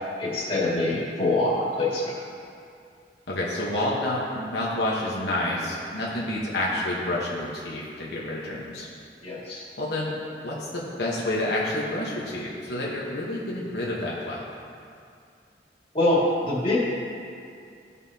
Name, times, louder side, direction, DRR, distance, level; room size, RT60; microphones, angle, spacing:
voice 1, 0.2-2.1 9.2-9.6 15.9-16.8, left 2 dB, 30° left, -7 dB, 2.0 m, -24 dB
voice 2, 3.3-8.9 9.8-10.1 10.4-14.4, left 1 dB, 75° left, -5 dB, 1.1 m, -29 dB
15.0 x 5.6 x 2.8 m, 2.4 s
head